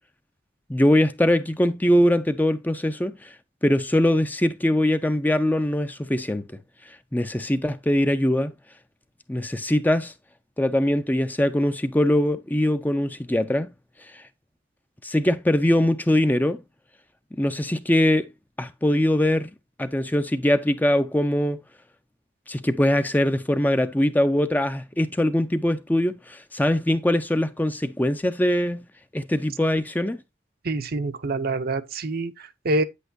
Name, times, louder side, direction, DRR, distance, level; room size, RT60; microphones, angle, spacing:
voice 1, 0.7-3.3 3.6-6.4 6.9-8.5 9.3-10.1 10.6-13.7 14.0-14.2 15.0-16.6 17.3-18.3 18.6-19.5 19.8-21.6 22.5-28.9 29.1-30.2, left 1 dB, 10° left, 0.5 m, -22 dB
voice 2, 30.6-32.8, right 2 dB, 50° right, 0.7 m, -26 dB
8.7 x 8.2 x 2.6 m
head